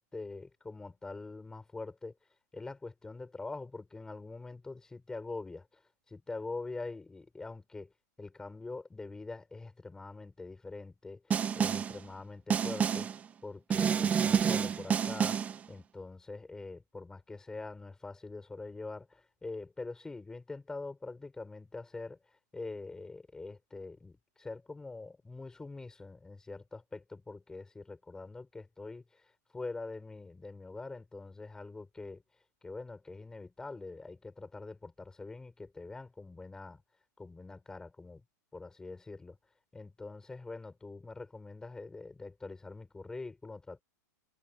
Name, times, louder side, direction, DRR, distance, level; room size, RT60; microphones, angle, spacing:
voice 1, 0.0-2.1 2.5-5.8 6.1-15.4 15.7-32.2 32.6-36.8 37.2-38.2 38.5-39.4 39.7-43.8, left 3 dB, 5° left, 6.7 m, -44 dB
Snare drum, 11.3-12.0 12.5-13.2 13.7-15.6, right 7 dB, 15° right, 1.2 m, -29 dB
supercardioid pair, 160°, 10 cm